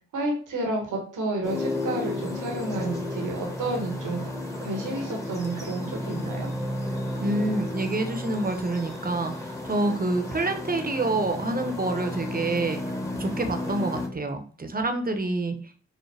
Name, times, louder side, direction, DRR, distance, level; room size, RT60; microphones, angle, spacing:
voice 1, 0.1-4.2 4.6-6.5, right 2 dB, 80° right, 1 dB, 1.2 m, -30 dB
sound 1, 1.4-14.1, left 1 dB, 10° left, 1.3 m, -33 dB
voice 2, 7.2-12.8 13.2-15.5, right 2 dB, 30° right, 5 dB, 0.9 m, -27 dB
5.6 x 2.1 x 3.4 m, 0.42 s
supercardioid pair, 40°, 31 cm